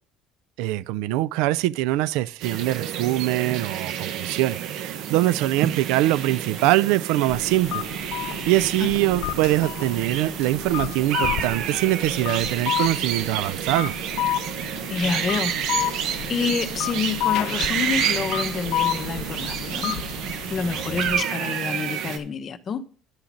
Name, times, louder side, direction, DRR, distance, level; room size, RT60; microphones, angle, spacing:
voice 1, 0.6-7.8 8.5-13.9, right 15 dB, 80° right, 0.4 m, -23 dB
sound 1, 2.4-22.2, right 9 dB, 65° right, 1.2 m, -29 dB
sound 2, 7.3-21.2, left 14 dB, 70° left, 0.7 m, -31 dB
voice 2, 14.9-15.5 16.3-20.0 20.5-22.8, left 6 dB, 40° left, 0.9 m, -28 dB
11.0 x 3.9 x 7.2 m
cardioid pair, 115°, 0 cm